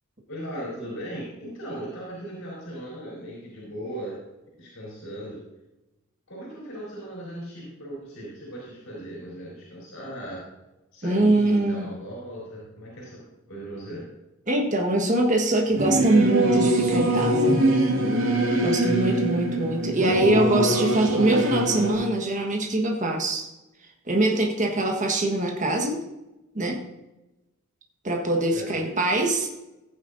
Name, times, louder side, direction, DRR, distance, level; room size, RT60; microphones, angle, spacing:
voice 1, 0.3-4.2 4.6-5.4 6.3-10.4 10.9-13.2 13.5-14.0 28.5-28.9, right 1 dB, 70° left, -5 dB, 4.1 m, -38 dB
voice 2, 11.0-11.9 14.5-17.6 18.6-23.5 24.1-26.0 26.5-26.8 28.0-29.5, right 1 dB, 35° right, 1 dB, 1.4 m, -23 dB
Singing / Musical instrument, 15.7-21.9, right 1 dB, 75° right, 2.1 m, -23 dB
15.0 x 9.6 x 2.7 m, 1.0 s
head